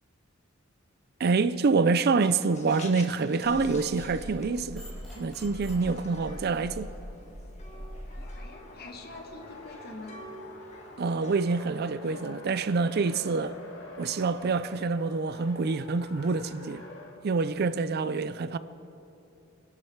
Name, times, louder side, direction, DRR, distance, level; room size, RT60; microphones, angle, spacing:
voice 1, 1.2-4.9 5.2-6.9 11.0-13.6 14.0-16.8 17.2-18.6, right 4 dB, 50° right, 0.4 m, -26 dB
sound 1, 2.2-12.6, left 1 dB, 35° left, 1.8 m, -49 dB
sound 2, 3.4-8.3, equal, ahead, 4.2 m, -42 dB
Race car auto racing, 7.9-17.2, left 2 dB, 65° left, 2.3 m, -47 dB
voice 2, 8.1-10.2, left 2 dB, 50° left, 1.7 m, -45 dB
24.5 x 12.0 x 4.6 m
head